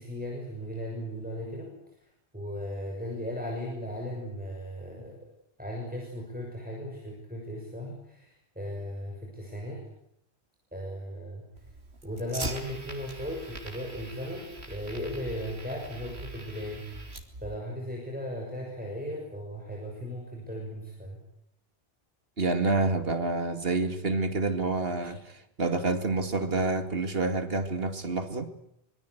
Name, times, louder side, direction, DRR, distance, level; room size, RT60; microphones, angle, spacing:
voice 1, 0.0-5.3 5.6-9.8 10.7-11.5 12.0-17.1 17.4-21.2, equal, 10° right, 0 dB, 6.4 m, -37 dB
Fire, 11.6-17.6, right 2 dB, 80° right, 3.3 m, -42 dB
voice 2, 22.4-28.5, right 3 dB, 65° right, 8 dB, 2.6 m, -28 dB
25.0 x 23.5 x 8.2 m, 0.76 s
omnidirectional pair, 1.1 m